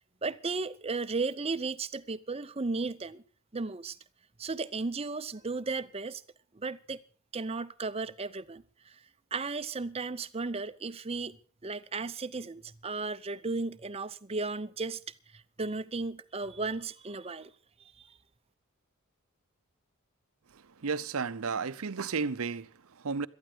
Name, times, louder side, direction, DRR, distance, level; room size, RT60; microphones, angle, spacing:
voice 1, 0.2-3.2 3.5-4.0 4.4-6.2 6.5-7.0 7.3-8.9 9.3-11.4 11.6-15.0 15.3-17.5 18.0-18.1, right 3 dB, 25° right, 0.7 m, -35 dB
voice 2, 20.5-23.3, right 5 dB, 75° right, 0.7 m, -33 dB
18.0 x 13.0 x 5.0 m
head